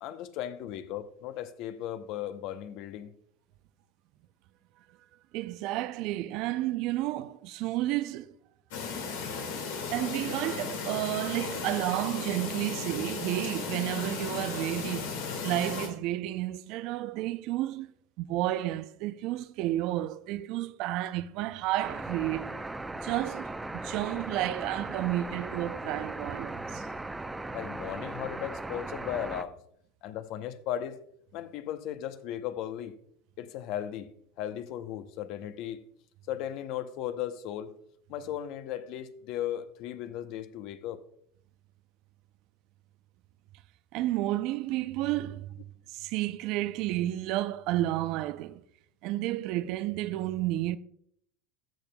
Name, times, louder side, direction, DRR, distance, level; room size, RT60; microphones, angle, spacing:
voice 1, 0.0-3.1 27.5-29.6 30.0-31.0 31.3-33.0 33.4-34.1 34.4-35.8 36.3-37.8 38.1-41.0, left 11 dB, 60° left, 0.7 m, -36 dB
voice 2, 5.3-8.4 9.9-22.6 23.0-26.9 43.9-45.5 45.9-48.6 49.0-50.8, right 15 dB, 60° right, 0.4 m, -31 dB
Chirp tweet, 8.7-15.9, left 5 dB, 80° left, 2.0 m, -35 dB
sound 1, 21.8-29.4, right 2 dB, 10° right, 0.6 m, -38 dB
14.0 x 6.7 x 2.2 m
hypercardioid pair, 95°, 0 cm